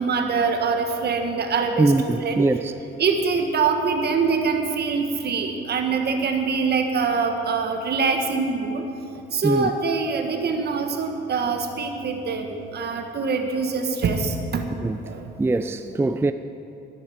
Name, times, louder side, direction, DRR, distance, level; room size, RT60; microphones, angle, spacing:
voice 1, 0.0-2.5 3.0-8.8 9.3-14.6 15.0-15.2, right 5 dB, 55° right, 1.7 m, -24 dB
voice 2, 1.8-2.7 9.4-9.7 14.8-15.0 15.4-16.3, right 2 dB, 10° right, 0.4 m, -21 dB
12.0 x 11.5 x 7.3 m
cardioid pair, 90°, 20 cm